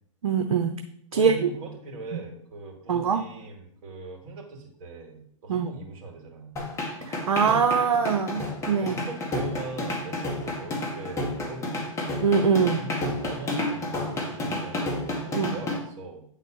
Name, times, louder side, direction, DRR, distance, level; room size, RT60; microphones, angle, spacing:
voice 1, 0.2-0.8 1.1-1.4 2.1-2.2 2.9-3.2 5.5-5.7 7.1-9.0 12.2-12.8 15.3-15.6, right 6 dB, 85° right, 6 dB, 0.7 m, -23 dB
voice 2, 1.1-6.5 8.3-11.9 12.5-16.2, right 2 dB, 45° right, 1 dB, 2.8 m, -40 dB
sound 1, 6.6-15.8, left 2 dB, 15° left, 1.7 m, -30 dB
9.0 x 4.1 x 5.4 m, 0.70 s
hypercardioid pair, 120°, 18 cm